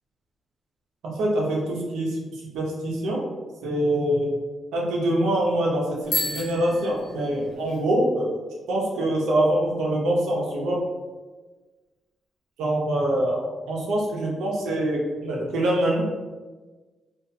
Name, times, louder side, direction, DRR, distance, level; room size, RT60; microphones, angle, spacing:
voice 1, 1.0-2.2 2.5-3.2 3.6-4.3 4.7-8.3 8.7-10.8 12.6-16.0, right 1 dB, 90° right, -2 dB, 0.6 m, -24 dB
Bicycle bell, 6.0-7.8, left 1 dB, 75° left, 1.0 m, -31 dB
2.3 x 2.2 x 2.6 m, 1.3 s
cardioid pair, 70°, 0 cm